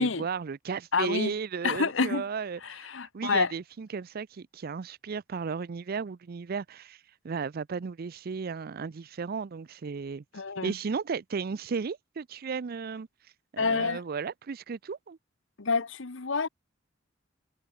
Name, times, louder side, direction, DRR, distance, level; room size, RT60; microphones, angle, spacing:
voice 1, 0.0-2.9 3.1-10.2 10.6-13.1 13.5-15.2, right 5 dB, 50° right, 0.5 m, -34 dB
voice 2, 0.9-1.3 1.6-2.2 2.6-3.5 10.3-10.7 13.6-14.0 15.6-16.5, left 4 dB, 70° left, 1.0 m, -28 dB
head